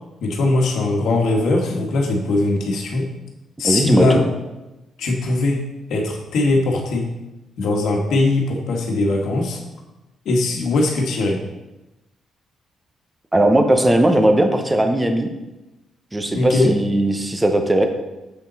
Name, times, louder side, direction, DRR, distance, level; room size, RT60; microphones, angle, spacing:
voice 1, 0.2-3.1 3.6-4.2 5.0-5.6 5.9-7.1 7.6-9.6 10.2-11.4 16.3-16.7, left 2 dB, 70° left, 1 dB, 1.5 m, -20 dB
voice 2, 3.6-4.2 13.3-15.3 16.1-17.9, right 1 dB, 10° right, 6 dB, 0.7 m, -17 dB
7.6 x 6.9 x 4.0 m, 1.0 s
cardioid pair, 165°, 0 cm